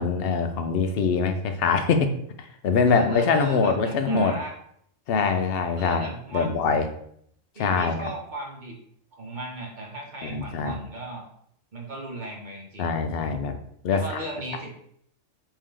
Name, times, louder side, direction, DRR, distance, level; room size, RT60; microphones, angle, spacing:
voice 1, 0.0-2.1 2.4-4.4 5.1-6.8 7.6-8.1 10.2-10.8 12.8-13.6 13.8-14.0, left 5 dB, 65° left, 7 dB, 0.6 m, -23 dB
voice 2, 2.9-4.5 5.8-6.8 7.6-8.8 9.1-11.2 11.7-12.9 13.9-14.8, right 2 dB, 40° right, 0 dB, 0.8 m, -36 dB
4.5 x 2.7 x 3.7 m, 0.68 s
omnidirectional pair, 1.4 m